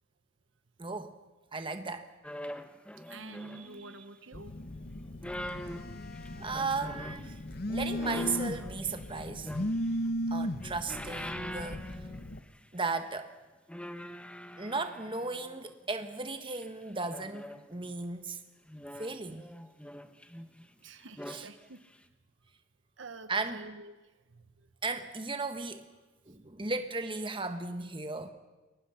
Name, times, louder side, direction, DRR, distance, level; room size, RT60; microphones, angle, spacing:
voice 1, 0.8-1.1 1.5-2.1 6.4-7.4 7.7-9.5 10.3-11.8 12.7-13.3 14.6-18.4 19.0-19.5 21.3-21.5 23.3-23.7 24.8-25.9 26.3-28.3, right 3 dB, 25° right, 7 dB, 1.4 m, -35 dB
sound 1, 2.2-4.0 5.0-7.3 8.0-10.1 10.5-12.6 12.8-13.1 13.7-15.7 16.6-17.9 18.7-20.7 21.0-21.5 21.9-22.0, equal, 5° left, 1.0 m, -44 dB
voice 2, 3.1-4.5 20.8-21.8 23.0-24.0 24.3-24.7, right 3 dB, 65° right, 10 dB, 1.1 m, -48 dB
Telephone, 4.3-12.4, equal, 50° left, 1.0 m, -36 dB
30.0 x 22.0 x 5.8 m, 1.1 s
head